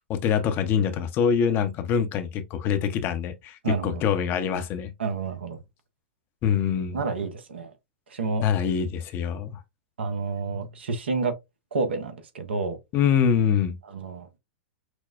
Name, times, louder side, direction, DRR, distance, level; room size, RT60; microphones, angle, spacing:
voice 1, 0.0-4.9 6.4-7.0 8.4-9.6 12.9-13.8, left 7 dB, 35° left, 0.7 m, -24 dB
voice 2, 3.6-4.0 5.0-5.6 6.9-7.7 8.1-8.5 10.0-11.3 11.7-12.8 13.9-14.3, right 4 dB, 70° right, 0.9 m, -29 dB
6.1 x 2.1 x 2.4 m
figure-of-eight pair, 100°, 6 cm